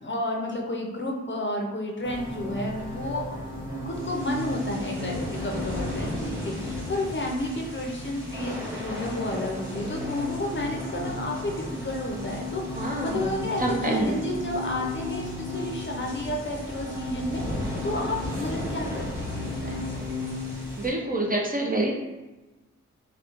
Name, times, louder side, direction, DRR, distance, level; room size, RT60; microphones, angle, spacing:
voice 1, 0.0-3.4 3.7-20.0, left 1 dB, 40° left, 0 dB, 0.5 m, -31 dB
sound 1, 2.0-20.9, left 1 dB, 10° right, 1.1 m, -33 dB
voice 2, 12.7-14.2 20.8-21.9, right 1 dB, 30° right, -1 dB, 0.4 m, -27 dB
2.9 x 2.1 x 2.4 m, 1.1 s
wide cardioid pair, 60°, 30 cm